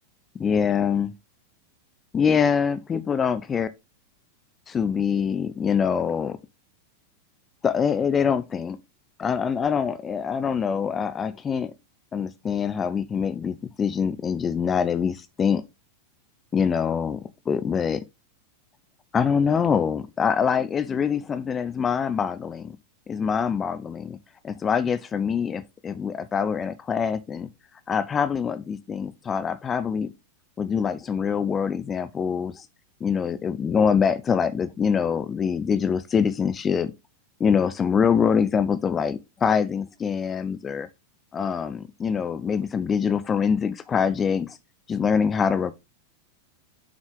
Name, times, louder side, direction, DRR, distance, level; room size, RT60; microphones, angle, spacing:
voice 1, 0.4-1.1 2.1-3.7 4.7-6.4 7.6-8.8 9.2-11.7 12.1-15.6 16.5-18.0 19.1-22.8 23.1-24.2 24.4-27.5 27.9-30.1 30.6-32.7 33.0-36.9 37.4-40.9 41.3-44.6 44.9-45.7, left 6 dB, 20° left, 0.7 m, -24 dB
7.6 x 6.1 x 3.7 m
figure-of-eight pair, 90°, 0 cm